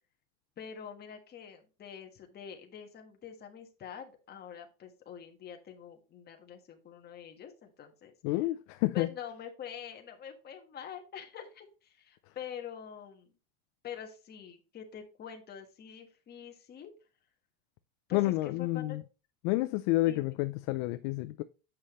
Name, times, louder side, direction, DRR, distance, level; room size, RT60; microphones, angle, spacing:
voice 1, 0.6-8.4 8.9-13.3 13.8-16.9 18.1-19.0 20.0-20.4, left 8 dB, 25° left, 1.4 m, -45 dB
voice 2, 8.2-9.1 18.1-19.0 19.4-21.4, left 18 dB, 50° left, 0.5 m, -29 dB
8.6 x 5.6 x 3.1 m
supercardioid pair, 155°, 40 cm